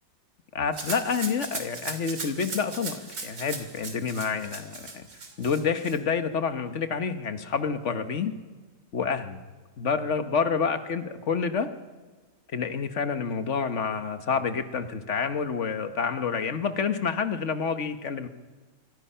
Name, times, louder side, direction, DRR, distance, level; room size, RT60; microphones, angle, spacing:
voice 1, 0.5-5.0 5.4-8.3 8.9-9.4 9.8-11.7 12.5-18.3, left 6 dB, 45° left, 10 dB, 1.5 m, -28 dB
Rattle (instrument), 0.7-6.0, right 4 dB, 85° right, 3.5 m, -38 dB
26.0 x 23.5 x 5.7 m, 1.4 s
omnidirectional pair, 1.8 m